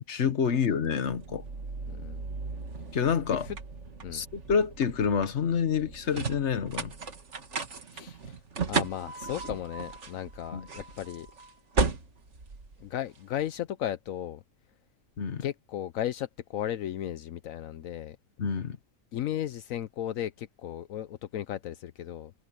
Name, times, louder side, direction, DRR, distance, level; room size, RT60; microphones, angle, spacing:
voice 1, 0.1-1.4 2.9-3.5 4.1-6.9 10.5-10.7 15.2-15.5 18.4-18.8, left 6 dB, 60° left, 1.5 m, -28 dB
sound 1, 1.1-13.4, right 4 dB, 60° right, 2.0 m, -36 dB
voice 2, 1.9-2.3 3.3-3.6 4.0-4.2 7.9-8.4 8.7-11.3 12.8-14.4 15.4-18.2 19.1-22.3, left 11 dB, 80° left, 1.1 m, -35 dB
omnidirectional pair, 1.4 m